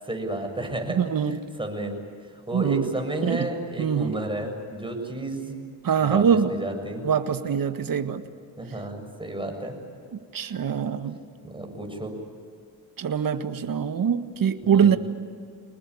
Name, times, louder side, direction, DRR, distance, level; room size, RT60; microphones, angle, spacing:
voice 1, 0.0-1.0 1.6-2.0 2.3-5.5 6.0-7.0 8.6-9.7 11.4-12.1 14.6-15.0, right 1 dB, 10° right, 3 dB, 7.3 m, -31 dB
voice 2, 0.9-1.4 2.5-2.9 3.2-3.5 3.8-4.1 5.8-6.5 7.0-8.2 10.3-11.2 13.0-15.0, right 7 dB, 45° right, 9 dB, 1.8 m, -23 dB
25.0 x 20.0 x 9.9 m, 2.3 s
supercardioid pair, 60°, 46 cm